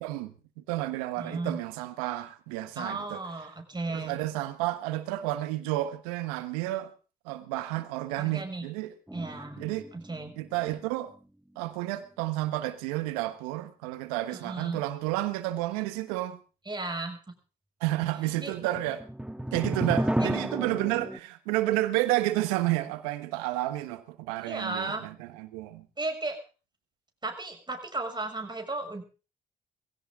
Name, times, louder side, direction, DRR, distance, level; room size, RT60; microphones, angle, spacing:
voice 1, 0.0-3.2 3.9-6.9 7.2-8.9 9.6-9.9 10.4-11.1 11.6-16.4 17.8-19.0 19.5-25.8, right 16 dB, 90° right, 1.2 m, -31 dB
voice 2, 1.2-1.6 2.8-4.2 8.2-8.6 9.1-9.6 9.9-10.3 14.3-14.8 16.7-17.2 18.4-18.5 20.2-20.3 24.4-25.0 26.0-26.4 27.2-29.0, right 2 dB, 25° right, 6.2 m, -35 dB
sound 1, 9.1-10.8 11.1-11.2 18.5-21.2, right 1 dB, 5° right, 1.7 m, -32 dB
20.5 x 16.5 x 3.7 m
hypercardioid pair, 45°, 18 cm